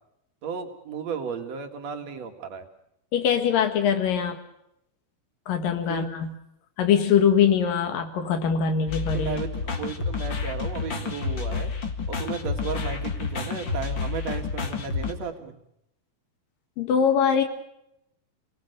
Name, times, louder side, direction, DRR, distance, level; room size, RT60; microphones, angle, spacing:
voice 1, 0.4-2.7 5.9-6.1 9.1-11.7 12.1-15.6, right 6 dB, 55° right, 6 dB, 3.0 m, -34 dB
voice 2, 3.1-4.4 5.5-6.3 6.8-9.4 16.8-17.4, left 7 dB, 90° left, 6 dB, 3.4 m, -22 dB
sound 1, 8.9-15.1, left 5 dB, 40° left, 2.1 m, -30 dB
28.0 x 18.5 x 6.7 m, 0.80 s
omnidirectional pair, 3.8 m